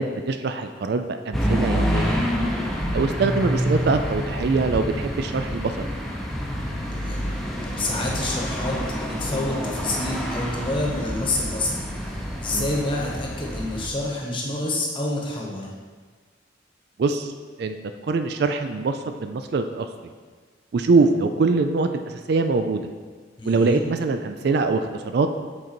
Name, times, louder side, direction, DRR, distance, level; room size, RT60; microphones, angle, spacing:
voice 1, 0.0-2.3 2.9-5.7 12.5-12.7 17.0-17.3 17.6-17.8 18.1-19.9 20.7-22.8 23.5-25.3, right 3 dB, 55° right, 8 dB, 0.3 m, -23 dB
sound 1, 1.3-13.9, equal, ahead, 0.6 m, -27 dB
voice 2, 6.9-7.3 7.6-11.8 12.4-15.7 23.4-23.8, left 2 dB, 25° left, -2 dB, 1.0 m, -28 dB
7.7 x 3.9 x 4.4 m, 1.5 s
head